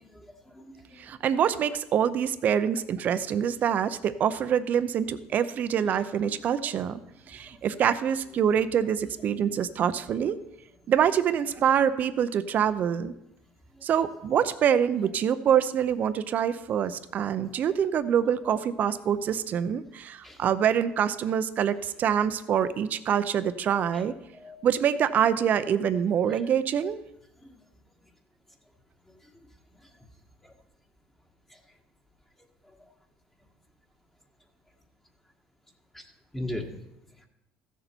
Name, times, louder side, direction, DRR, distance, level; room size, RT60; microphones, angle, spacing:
voice 1, 0.1-1.1 13.8-13.9 17.2-17.3 20.2-20.4 23.9-24.1 24.3-24.6 26.3-26.4 27.4-27.5 30.4-30.5 31.5-31.6 32.8-32.9 35.9-36.1 36.3-36.6, left 1 dB, 10° left, 2 dB, 1.4 m, -39 dB
voice 2, 1.0-7.0 7.3-10.4 10.9-13.1 13.8-24.1 24.6-27.0, right 8 dB, 50° right, 13 dB, 0.6 m, -25 dB
15.0 x 6.8 x 4.4 m, 0.86 s
supercardioid pair, 105°, 4 cm